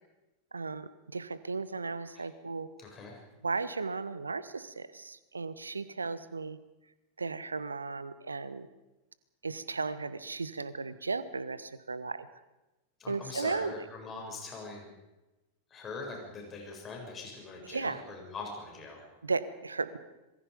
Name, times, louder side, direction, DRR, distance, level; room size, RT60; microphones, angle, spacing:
voice 1, 0.5-2.7 3.4-6.6 7.2-8.7 9.4-12.3 13.1-13.8 17.7-18.0 19.2-20.0, right 4 dB, 75° right, 15 dB, 1.3 m, -35 dB
voice 2, 2.8-3.2 13.0-14.9 15.7-19.1, left 3 dB, 25° left, 0 dB, 7.3 m, -42 dB
26.0 x 22.5 x 5.3 m, 1.0 s
figure-of-eight pair, 90°, 0 cm